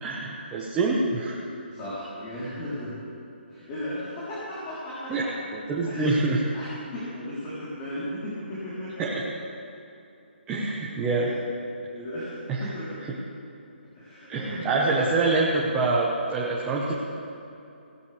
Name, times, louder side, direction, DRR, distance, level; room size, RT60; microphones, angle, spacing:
voice 1, 0.0-1.4 5.1-5.2 5.5-6.4 9.0-9.2 10.5-11.3 12.6-12.7 14.3-16.9, right 3 dB, 15° right, -5 dB, 1.3 m, -25 dB
voice 2, 1.7-3.0 3.5-5.3 5.9-6.2 6.5-9.1 11.0-11.4 11.9-13.2 13.9-15.3, equal, 25° left, -10 dB, 4.0 m, -36 dB
17.0 x 16.5 x 3.5 m, 2.8 s
figure-of-eight pair, 150°, 6 cm